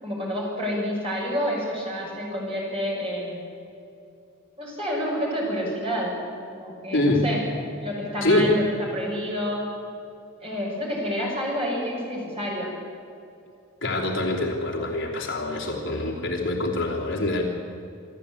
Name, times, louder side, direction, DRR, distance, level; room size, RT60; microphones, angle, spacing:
voice 1, 0.0-3.4 4.6-6.2 6.5-7.4 7.8-9.7 10.4-12.8, equal, 25° right, -3 dB, 6.4 m, -28 dB
voice 2, 6.9-7.3 8.2-8.6 13.8-17.4, left 2 dB, 60° left, -2 dB, 3.1 m, -24 dB
26.5 x 12.5 x 8.6 m, 2.6 s
head